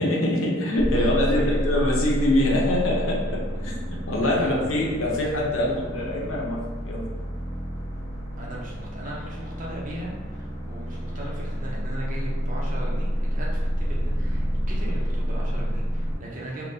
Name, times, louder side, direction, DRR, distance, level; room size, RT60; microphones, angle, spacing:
voice 1, 0.0-7.1, left 1 dB, 85° left, -3 dB, 0.7 m, -24 dB
sound 1, 0.8-16.1, equal, 15° left, 1.1 m, -29 dB
voice 2, 0.9-1.6 4.2-4.9 8.4-16.6, right 1 dB, 40° right, -4 dB, 0.7 m, -37 dB
3.7 x 2.2 x 2.7 m, 1.4 s
head